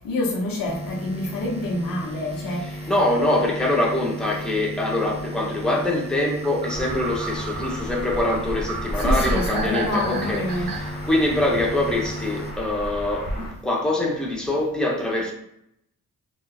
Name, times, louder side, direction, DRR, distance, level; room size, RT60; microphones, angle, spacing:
voice 1, 0.0-2.9 4.3-4.5 8.9-10.7, left 2 dB, 80° left, 0.9 m, -27 dB
sound 1, 0.7-13.6, equal, 20° right, 0.7 m, -36 dB
voice 2, 2.6-15.3, left 1 dB, ahead, 1.0 m, -24 dB
sound 2, 6.4-10.9, right 5 dB, 80° right, 0.6 m, -33 dB
sound 3, 6.7-13.5, equal, 35° left, 1.5 m, -32 dB
3.7 x 2.4 x 2.4 m
cardioid pair, 55°, 34 cm